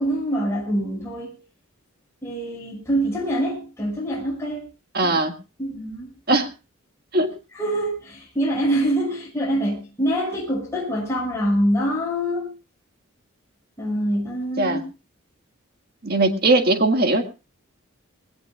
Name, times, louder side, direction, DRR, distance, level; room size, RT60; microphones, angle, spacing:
voice 1, 0.0-1.4 2.2-4.7 5.0-5.2 5.6-6.1 7.6-12.5 13.8-14.8, equal, 15° left, 6.0 m, -25 dB
voice 2, 4.9-5.3 6.3-6.5 7.1-7.3 14.6-14.8 16.0-17.2, right 2 dB, 45° right, 1.7 m, -19 dB
21.5 x 17.5 x 2.3 m
head